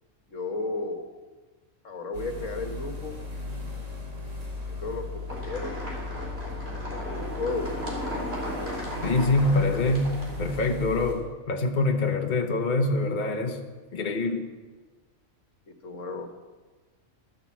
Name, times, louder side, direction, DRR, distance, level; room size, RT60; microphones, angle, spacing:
voice 1, 0.3-1.1 1.8-3.2 4.6-5.7 6.5-7.7 15.8-16.3, left 3 dB, 65° left, 5 dB, 1.9 m, -34 dB
sound 1, 2.1-11.2, left 3 dB, 65° right, 3.9 m, -37 dB
sound 2, 5.3-10.7, equal, 45° right, 4.4 m, -36 dB
voice 2, 9.0-13.6 13.9-14.5, left 2 dB, 35° left, 3 dB, 1.3 m, -25 dB
14.0 x 12.5 x 7.4 m, 1.3 s
omnidirectional pair, 1.4 m